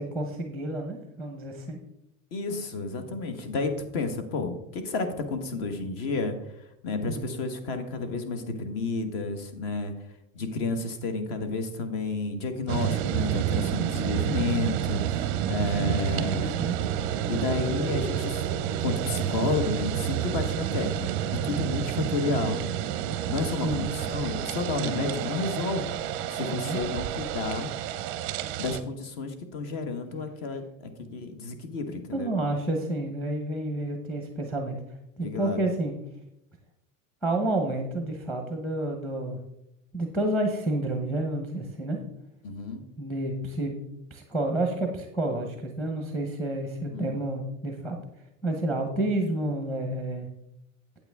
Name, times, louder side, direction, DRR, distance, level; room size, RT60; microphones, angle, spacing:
voice 1, 0.0-1.8 3.0-3.1 7.1-7.3 15.7-16.8 23.6-23.9 24.8-25.1 26.5-26.8 32.1-34.8 35.2-35.9 37.2-39.4 39.9-42.0 43.0-43.7 44.1-48.0 48.4-50.3, right 1 dB, 5° left, 3 dB, 0.8 m, -30 dB
voice 2, 2.3-9.9 10.3-16.5 17.3-18.4 18.8-21.1 21.4-22.7 23.3-26.0 26.3-27.7 28.6-32.3 35.2-35.6 42.4-42.8 46.9-47.2, left 3 dB, 50° left, 8 dB, 1.4 m, -31 dB
sound 1, 12.7-28.8, right 10 dB, 30° right, 0.5 m, -29 dB
8.8 x 8.4 x 3.5 m, 0.82 s
supercardioid pair, 155°, 40 cm